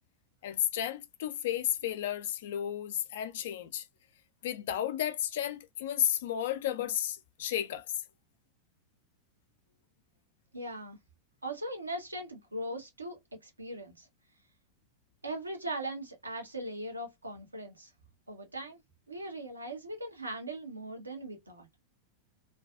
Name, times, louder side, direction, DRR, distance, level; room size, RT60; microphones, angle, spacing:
voice 1, 0.4-3.9 4.4-7.8, left 11 dB, 55° left, 0.4 m, -33 dB
voice 2, 10.5-11.0 11.4-14.1 15.2-17.9 18.3-18.8 19.1-21.7, right 1 dB, 80° right, 0.7 m, -39 dB
2.4 x 2.3 x 2.3 m
figure-of-eight pair, 90°, 0 cm